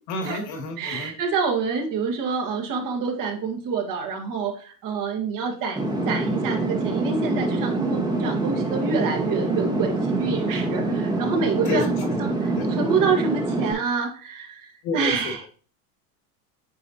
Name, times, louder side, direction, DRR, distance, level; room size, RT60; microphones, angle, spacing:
voice 1, 0.1-1.1 11.7-12.2 12.6-12.7 14.8-15.3, left 3 dB, 60° left, 2 dB, 2.1 m, -29 dB
voice 2, 0.8-11.9 12.2-15.4, right 5 dB, 40° right, 3 dB, 1.5 m, -27 dB
sound 1, 5.8-13.7, right 2 dB, 10° right, 1.1 m, -25 dB
8.4 x 4.2 x 2.8 m, 0.39 s
hypercardioid pair, 105°, 48 cm